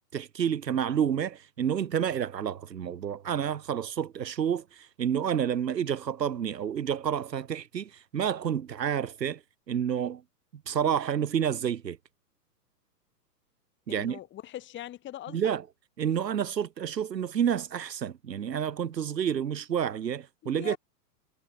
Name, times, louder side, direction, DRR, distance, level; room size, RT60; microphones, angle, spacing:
voice 1, 0.1-9.4 9.7-10.2 10.7-12.0 13.9-14.2 15.3-15.6 16.0-20.8, right 8 dB, 85° right, 2.5 m, -29 dB
voice 2, 13.9-15.4 20.4-20.8, left 13 dB, 25° left, 2.4 m, -41 dB
hypercardioid pair, 130°, 49 cm